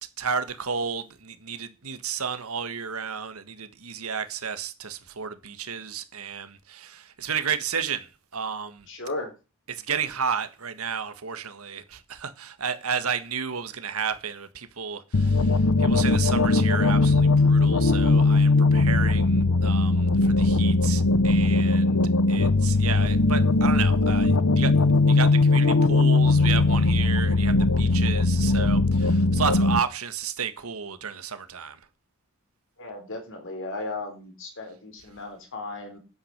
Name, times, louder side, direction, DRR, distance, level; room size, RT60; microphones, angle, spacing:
voice 1, 0.2-8.9 9.7-22.0 22.3-24.7 25.1-31.8, right 6 dB, 85° right, 1.6 m, -32 dB
voice 2, 8.9-9.3 32.8-36.0, left 2 dB, 65° left, 4.0 m, -35 dB
sound 1, 15.1-29.8, left 3 dB, 90° left, 0.9 m, -20 dB
9.8 x 8.6 x 6.6 m
head